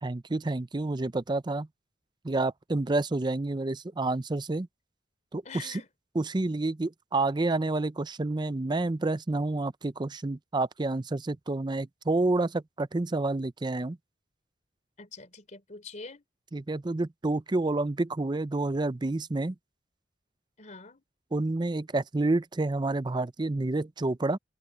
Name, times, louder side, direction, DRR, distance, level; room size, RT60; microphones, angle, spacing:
voice 1, 0.0-1.7 2.2-4.7 5.3-5.8 6.2-14.0 16.5-19.5 21.3-24.4, right 2 dB, 25° right, 0.5 m, -29 dB
voice 2, 5.4-5.9 15.0-16.2 20.6-21.0, left 4 dB, 40° left, 3.8 m, -44 dB
head